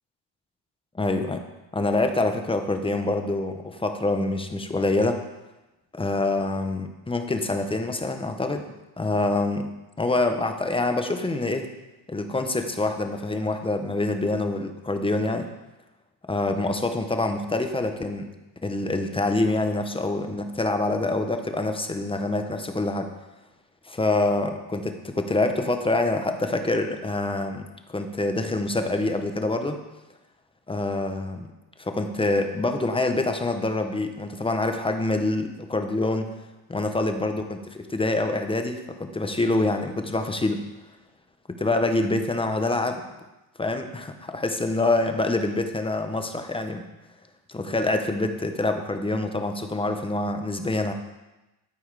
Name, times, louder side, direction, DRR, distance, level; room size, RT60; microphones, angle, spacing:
voice 1, 0.9-1.4 1.7-5.2 5.9-8.7 9.0-9.7 10.0-11.7 12.1-15.5 16.3-18.3 18.6-23.1 23.9-29.8 30.7-31.5 31.8-36.3 36.7-40.6 41.5-43.0 43.6-46.8 47.5-50.9, left 2 dB, 10° left, 6 dB, 0.9 m, -26 dB
12.5 x 4.6 x 4.8 m, 1.0 s
cardioid pair, 95°, 44 cm